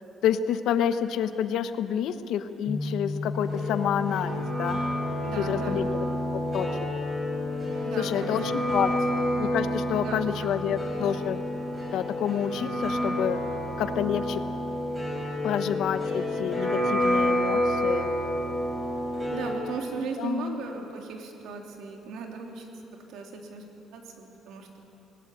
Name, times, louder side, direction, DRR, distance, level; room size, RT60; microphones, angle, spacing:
voice 1, 0.2-4.8 5.4-6.0 6.3-6.7 8.0-11.4 11.9-13.4 13.8-14.4 15.4-18.1 20.2-20.6, left 9 dB, 70° left, 10 dB, 1.0 m, -29 dB
sound 1, 2.7-18.3, left 2 dB, 15° left, 0.8 m, -37 dB
sound 2, 3.3-19.5, equal, 20° right, 6.2 m, -29 dB
voice 2, 5.2-5.9 7.8-8.4 10.0-10.5 19.3-22.7 23.1-23.6 23.9-24.7, right 4 dB, 80° right, 2 dB, 3.0 m, -37 dB
20.0 x 19.0 x 8.7 m, 2.9 s
cardioid pair, 155°, 0 cm